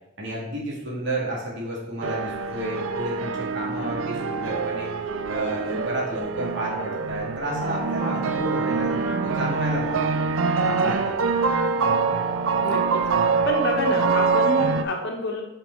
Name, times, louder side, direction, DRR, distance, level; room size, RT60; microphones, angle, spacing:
voice 1, 0.2-4.9 5.3-10.2 10.7-11.2, right 1 dB, 65° right, -4 dB, 2.5 m, -31 dB
sound 1, 2.0-14.8, right 4 dB, 85° right, 0.5 m, -25 dB
sound 2, 7.4-12.9, right 2 dB, 20° right, 1.7 m, -36 dB
voice 2, 12.6-13.0 13.5-15.4, left 1 dB, 60° left, 1 dB, 1.3 m, -27 dB
6.2 x 5.3 x 4.6 m, 0.91 s
head